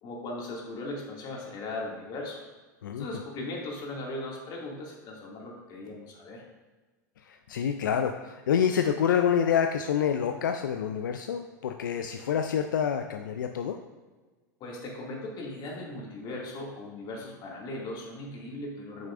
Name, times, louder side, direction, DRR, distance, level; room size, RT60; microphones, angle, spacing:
voice 1, 0.0-2.4 2.9-6.4 14.6-19.1, left 2 dB, 45° left, -2 dB, 2.3 m, -38 dB
voice 2, 7.2-13.8, left 8 dB, 85° left, 6 dB, 0.4 m, -27 dB
8.8 x 6.4 x 2.5 m, 1.3 s
hypercardioid pair, 95°, 10 cm